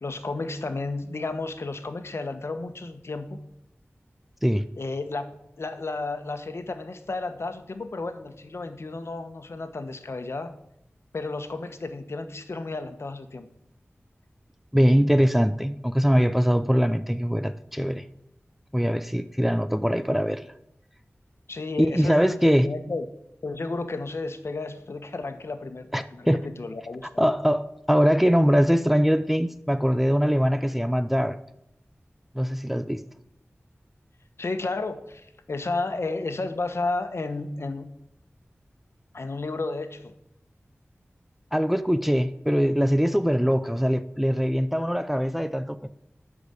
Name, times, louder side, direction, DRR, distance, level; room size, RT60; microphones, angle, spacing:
voice 1, 0.0-3.4 4.8-10.5 11.1-13.5 21.5-23.0 23.4-27.1 34.4-37.9 39.1-40.1, left 3 dB, 70° left, 1.1 m, -32 dB
voice 2, 14.7-18.0 18.7-20.5 21.8-22.7 25.9-26.4 27.2-31.4 32.3-33.0 41.5-45.9, equal, 5° right, 0.5 m, -22 dB
12.0 x 5.0 x 8.3 m
wide cardioid pair, 75°, 5 cm